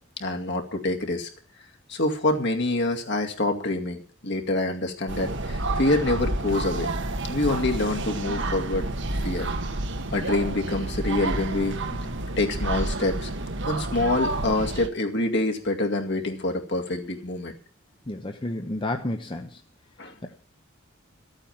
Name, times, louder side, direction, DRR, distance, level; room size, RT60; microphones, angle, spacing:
voice 1, 0.2-1.3 1.9-6.9 7.2-8.9 9.2-9.5 10.1-11.7 12.4-13.3 13.7-17.5 20.0-20.4, left 2 dB, 55° left, 3 dB, 2.3 m, -26 dB
sound 1, 5.1-14.9, right 2 dB, 55° right, 1.2 m, -29 dB
voice 2, 18.1-19.6, left 1 dB, 25° left, 5 dB, 0.9 m, -31 dB
14.0 x 8.9 x 7.3 m, 0.43 s
head